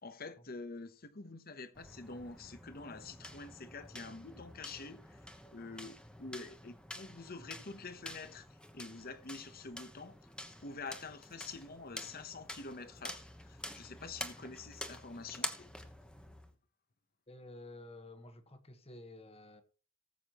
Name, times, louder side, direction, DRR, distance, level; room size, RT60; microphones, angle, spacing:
voice 1, 0.0-10.2 10.6-15.7, left 3 dB, 45° left, 1.0 m, -47 dB
sound 1, 1.8-16.5, left 1 dB, 5° left, 1.0 m, -48 dB
voice 2, 17.3-19.6, left 2 dB, 30° left, 1.4 m, -51 dB
19.0 x 7.4 x 3.0 m
head